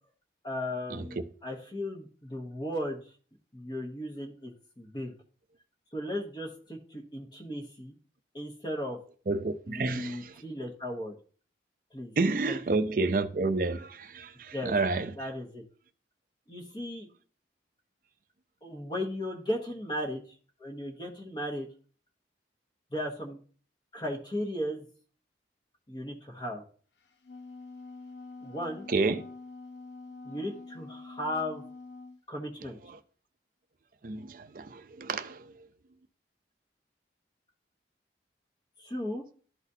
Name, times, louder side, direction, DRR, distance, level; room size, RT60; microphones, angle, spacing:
voice 1, 0.4-3.0 3.5-5.1 5.9-8.0 8.3-9.0 9.7-11.1 11.9-12.1 12.5-12.6 14.5-14.7 15.2-15.6 16.5-17.1 18.6-20.2 20.6-21.7 22.9-23.4 23.9-24.8 25.9-26.6 28.4-28.9 30.2-31.6 32.3-32.8 38.8-39.2, left 1 dB, 25° left, 1.0 m, -36 dB
voice 2, 9.3-10.4 12.2-15.1 28.9-29.2 32.6-33.0 34.0-35.5, right 3 dB, 50° right, 0.5 m, -30 dB
Wind instrument woodwind instrument, 27.0-32.2, left 3 dB, 85° left, 0.8 m, -46 dB
12.0 x 4.1 x 2.7 m
head